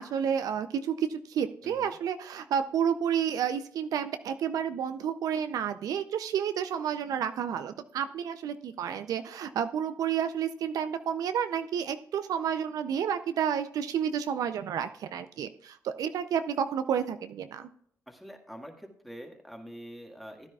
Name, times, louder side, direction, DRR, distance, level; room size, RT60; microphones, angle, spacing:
voice 1, 0.0-17.7, right 8 dB, 75° right, 10 dB, 0.5 m, -30 dB
voice 2, 1.6-2.0 18.1-20.5, equal, ahead, 2 dB, 1.7 m, -45 dB
14.5 x 9.8 x 2.3 m, 0.64 s
cardioid pair, 75°, 6 cm